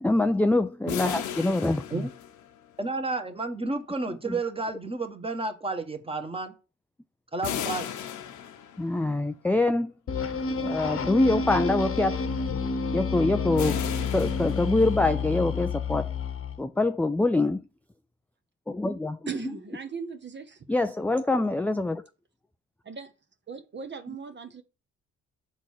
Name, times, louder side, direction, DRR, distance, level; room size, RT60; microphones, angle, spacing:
voice 1, 0.0-2.1 4.3-4.4 8.8-9.9 10.5-12.2 12.9-13.8 14.1-16.1 16.6-17.6 18.7-19.2 20.7-22.0, left 2 dB, 5° left, 0.4 m, -25 dB
sound 1, 0.9-2.7 7.4-9.1 13.6-15.2, left 9 dB, 75° left, 1.1 m, -35 dB
voice 2, 2.8-6.5 7.3-7.9, right 3 dB, 20° right, 1.6 m, -31 dB
sound 2, 10.1-16.6, left 5 dB, 45° left, 1.1 m, -29 dB
voice 3, 19.3-20.6 22.8-23.1 23.5-24.6, right 6 dB, 35° right, 1.1 m, -38 dB
7.2 x 4.0 x 6.5 m
cardioid pair, 90°, 30 cm